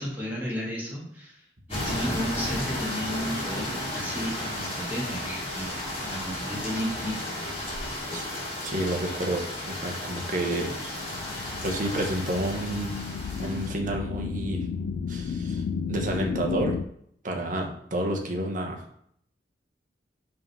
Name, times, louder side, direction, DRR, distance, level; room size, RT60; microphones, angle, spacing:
voice 1, 0.0-1.4 1.7-5.8 6.0-7.3, equal, 10° right, -5 dB, 2.0 m, -33 dB
sound 1, 1.7-13.7, left 1 dB, 35° left, 2.0 m, -33 dB
voice 2, 8.6-10.7 11.6-12.9 13.4-14.7 15.1-16.7 17.2-18.8, right 1 dB, 45° right, 1 dB, 1.1 m, -30 dB
sound 2, 10.2-16.8, left 5 dB, 60° left, 0.3 m, -33 dB
5.3 x 3.8 x 5.6 m, 0.67 s
head